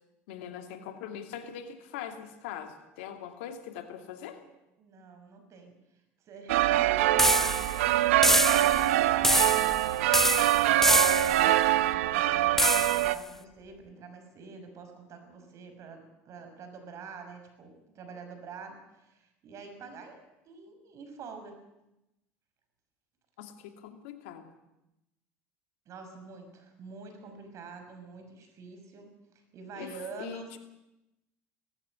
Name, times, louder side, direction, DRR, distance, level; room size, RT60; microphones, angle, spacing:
voice 1, 0.3-4.4 23.4-24.5 29.7-30.6, left 9 dB, 80° left, 6 dB, 2.6 m, -42 dB
voice 2, 4.8-5.7 6.3-21.6 25.9-29.1 29.5-30.6, right 4 dB, 50° right, 7 dB, 6.0 m, -46 dB
sound 1, 6.5-13.2, right 14 dB, 85° right, 0.8 m, -24 dB
sound 2, 7.2-7.8 8.2-8.9 9.2-9.8 10.1-11.5 12.6-13.1, left 1 dB, 5° left, 0.6 m, -26 dB
19.5 x 15.0 x 9.9 m, 0.91 s
hypercardioid pair, 85°, 7 cm